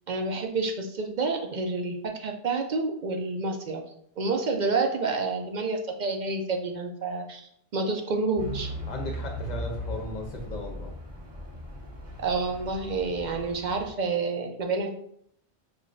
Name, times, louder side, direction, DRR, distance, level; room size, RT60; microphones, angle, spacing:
voice 1, 0.1-8.7 12.2-14.9, right 3 dB, 55° right, 3 dB, 0.6 m, -29 dB
Truck / Idling, 8.4-13.9, equal, 15° right, 1.4 m, -38 dB
voice 2, 8.8-10.9, left 2 dB, 45° left, 2 dB, 0.8 m, -36 dB
6.4 x 2.5 x 2.5 m, 0.68 s
omnidirectional pair, 1.1 m